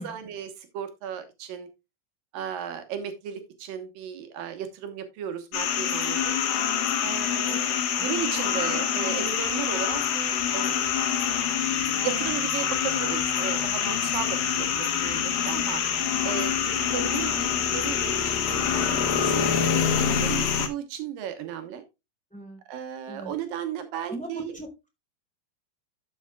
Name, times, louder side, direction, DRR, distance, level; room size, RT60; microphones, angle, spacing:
voice 1, 0.0-1.7 2.3-6.4 7.0-10.8 11.8-15.8 16.2-19.5 19.9-21.8 22.7-24.6, right 9 dB, 80° right, 7 dB, 2.9 m, -35 dB
sound 1, 5.5-20.7, left 8 dB, 70° left, 2.7 m, -26 dB
voice 2, 24.1-24.9, right 1 dB, ahead, 2 dB, 3.5 m, -38 dB
12.0 x 7.0 x 2.4 m, 0.24 s
omnidirectional pair, 4.0 m